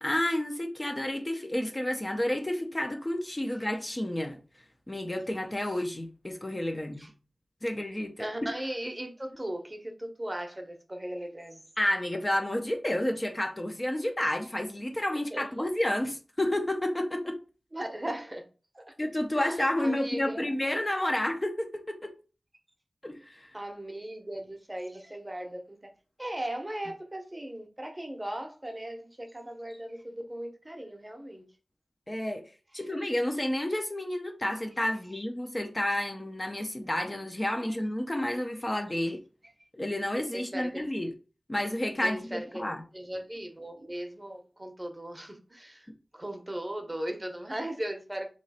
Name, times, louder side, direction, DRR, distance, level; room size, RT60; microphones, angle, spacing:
voice 1, 0.0-4.4 4.9-7.1 7.6-8.2 11.8-17.4 19.0-22.1 23.0-23.5 32.1-32.4 32.7-39.2 39.7-41.1 41.5-42.8, left 1 dB, 25° left, 0.5 m, -30 dB
voice 2, 8.2-11.6 15.1-15.7 17.7-18.4 18.7-18.9 19.3-20.5 23.5-25.8 26.2-31.4 37.7-37.8 39.6-39.7 40.3-40.9 42.0-42.6 42.9-48.3, right 1 dB, 20° right, 0.8 m, -38 dB
3.0 x 3.0 x 4.1 m
wide cardioid pair, 80°, 0 cm